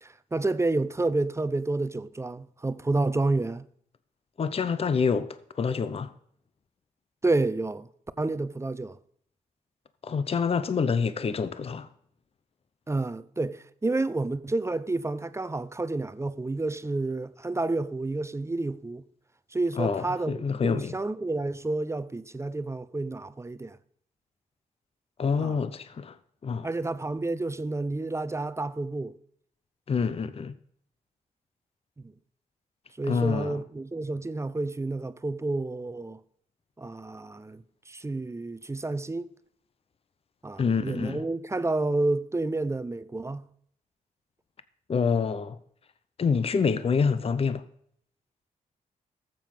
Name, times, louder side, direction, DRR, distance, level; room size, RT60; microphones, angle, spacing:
voice 1, 0.0-3.6 7.2-7.9 8.2-9.0 12.9-19.0 19.5-23.8 25.4-25.5 26.6-29.1 32.0-32.1 33.0-36.2 36.8-39.3 40.4-43.5, right 2 dB, 20° right, 0.7 m, -30 dB
voice 2, 4.4-6.1 10.0-11.9 19.8-21.0 25.2-26.2 26.4-26.7 29.9-30.6 33.1-33.6 40.6-41.2 44.9-45.6 46.2-47.6, left 5 dB, 40° left, 0.7 m, -27 dB
13.5 x 7.7 x 5.4 m
cardioid pair, 75°, 15 cm